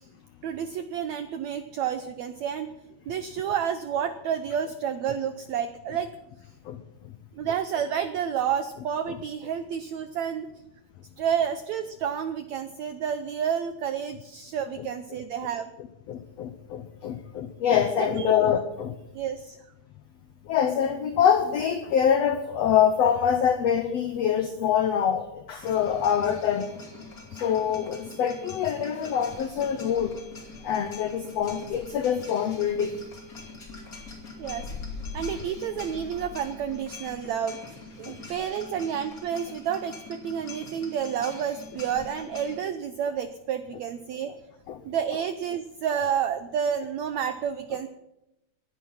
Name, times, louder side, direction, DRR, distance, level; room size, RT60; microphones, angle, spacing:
voice 1, 0.4-2.7 3.1-6.1 7.3-10.5 11.2-15.7 18.0-18.3 19.1-19.6 34.4-34.7 35.1-37.6 38.0-44.3 44.8-47.9, right 8 dB, 80° right, 10 dB, 1.6 m, -30 dB
voice 2, 16.1-18.9 20.5-26.7 27.3-30.2 30.6-32.9 38.1-38.2 44.7-44.8, left 8 dB, 90° left, 9 dB, 1.4 m, -25 dB
sound 1, 25.6-42.6, left 3 dB, 25° left, 2.7 m, -43 dB
19.0 x 11.5 x 5.6 m, 0.87 s
omnidirectional pair, 4.1 m